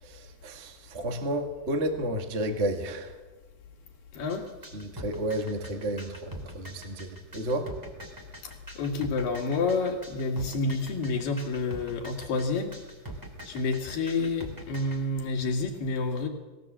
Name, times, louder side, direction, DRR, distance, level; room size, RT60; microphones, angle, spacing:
voice 1, 0.0-3.2 4.7-7.7, right 1 dB, 40° right, 5 dB, 0.9 m, -32 dB
voice 2, 4.1-4.5 8.4-12.8 13.5-16.3, left 3 dB, 60° left, 2 dB, 3.7 m, -29 dB
sound 1, 4.3-15.0, right 1 dB, 5° right, 2.2 m, -43 dB
21.0 x 17.0 x 7.5 m, 1.2 s
omnidirectional pair, 4.6 m